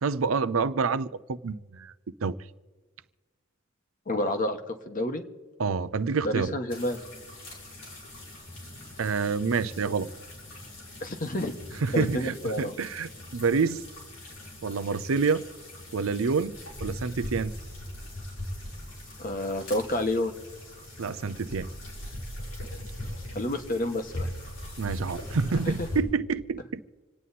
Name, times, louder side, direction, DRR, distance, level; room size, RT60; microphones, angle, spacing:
voice 1, 0.0-1.9 2.2-2.3 5.6-6.5 9.0-10.1 11.8-13.8 14.6-15.4 15.9-16.5 16.8-17.5 21.0-21.7 24.8-26.8, right 5 dB, 80° right, 14 dB, 0.6 m, -27 dB
voice 2, 4.1-5.2 6.2-7.0 11.0-11.5 11.9-12.7 19.2-20.3 23.3-24.3 25.6-25.9, left 1 dB, 40° left, 6 dB, 1.3 m, -29 dB
sound 1, 6.7-26.0, left 1 dB, 90° left, 5.9 m, -41 dB
27.0 x 9.3 x 4.2 m, 1.3 s
head